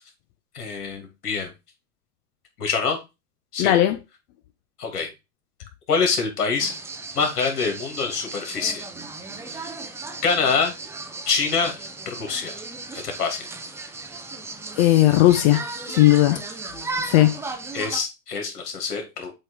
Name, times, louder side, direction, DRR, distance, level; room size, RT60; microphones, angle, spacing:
voice 1, 0.5-1.5 2.6-3.0 3.5-3.8 4.8-5.1 5.9-6.8 7.1-8.9 9.5-9.7 10.2-10.7 11.3-12.6 12.9-13.5 17.7-19.3, left 5 dB, 75° left, 2.7 m, -25 dB
voice 2, 3.6-4.0 14.8-15.6 15.9-16.4 17.1-17.3, left 14 dB, 40° left, 0.7 m, -16 dB
sound 1, 6.6-18.0, right 3 dB, 5° right, 0.5 m, -36 dB
7.6 x 3.2 x 4.7 m
hypercardioid pair, 110°, 46 cm